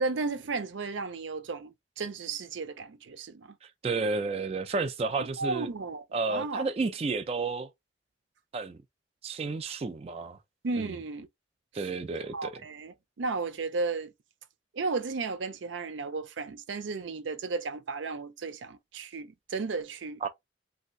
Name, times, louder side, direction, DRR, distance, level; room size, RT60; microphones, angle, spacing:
voice 1, 0.0-3.5 5.4-6.7 10.6-11.3 11.7-11.9 12.3-14.1 14.7-20.3, right 3 dB, 85° right, 0.5 m, -34 dB
voice 2, 3.8-5.7 6.1-7.7 8.5-8.8 9.2-10.4 10.9-11.0 11.7-12.6 20.2-20.3, right 4 dB, 30° right, 0.3 m, -31 dB
3.2 x 2.6 x 2.5 m
head